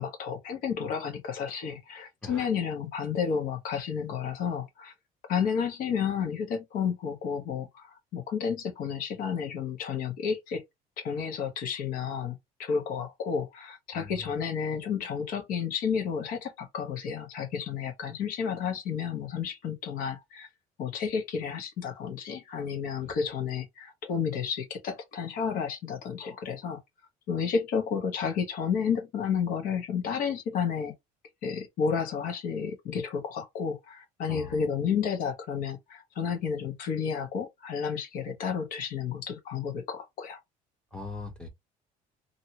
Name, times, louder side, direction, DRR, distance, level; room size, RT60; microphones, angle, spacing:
voice 1, 0.0-4.9 5.3-10.6 11.0-20.5 20.8-26.8 27.3-30.9 31.4-40.4, left 6 dB, 60° left, 1.1 m, -31 dB
voice 2, 13.9-14.3 23.0-23.2 34.3-34.6 40.9-41.5, left 3 dB, 5° left, 0.9 m, -41 dB
2.8 x 2.7 x 2.8 m
cardioid pair, 150°, 16 cm